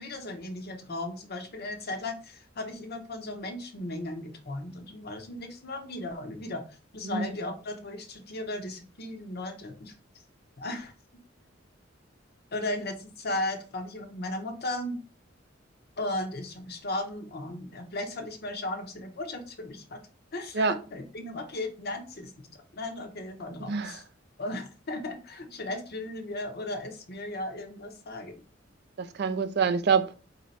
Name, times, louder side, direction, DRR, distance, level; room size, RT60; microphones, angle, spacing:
voice 1, 0.0-9.9 10.6-10.9 12.5-15.0 16.0-20.0 20.3-22.5 22.7-24.0 24.4-28.4, left 1 dB, 55° left, 0.9 m, -36 dB
voice 2, 23.7-24.0 29.0-30.2, right 5 dB, 60° right, 0.4 m, -26 dB
4.2 x 2.8 x 4.1 m
head